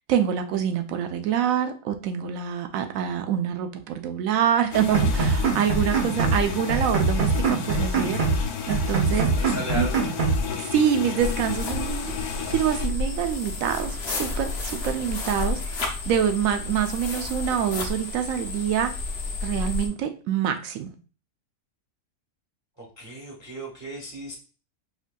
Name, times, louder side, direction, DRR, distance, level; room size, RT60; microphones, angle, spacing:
voice 1, 0.1-8.2 8.7-9.3 9.7-9.9 10.5-12.1 12.5-18.9 19.4-20.9, right 9 dB, 70° right, 0.9 m, -26 dB
sound 1, 4.7-12.9, left 7 dB, 75° left, 1.1 m, -32 dB
sound 2, 4.9-6.4 6.7-8.4 8.7-10.4, right 4 dB, 50° right, 0.6 m, -23 dB
voice 2, 9.1-10.2 11.9-12.2 22.8-24.3, left 1 dB, 15° right, 0.7 m, -36 dB
sound 3, 11.2-19.9, left 3 dB, 55° left, 0.8 m, -31 dB
4.9 x 2.6 x 2.2 m
omnidirectional pair, 1.6 m